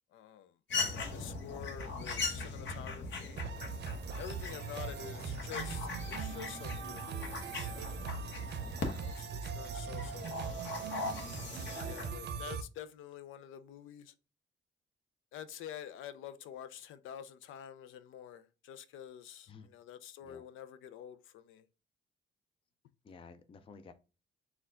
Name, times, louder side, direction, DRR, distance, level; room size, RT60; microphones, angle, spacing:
voice 1, 0.1-0.5 1.1-3.7 4.2-8.2 8.6-11.1 11.8-14.1 15.3-21.7, left 10 dB, 85° left, 0.5 m, -48 dB
sound 1, 0.7-12.1, left 3 dB, 65° left, 1.0 m, -40 dB
sound 2, 3.4-12.6, right 5 dB, 60° right, 0.6 m, -41 dB
voice 2, 23.0-23.9, left 5 dB, 25° left, 0.4 m, -53 dB
4.3 x 2.3 x 3.6 m
cardioid pair, 90°, 20 cm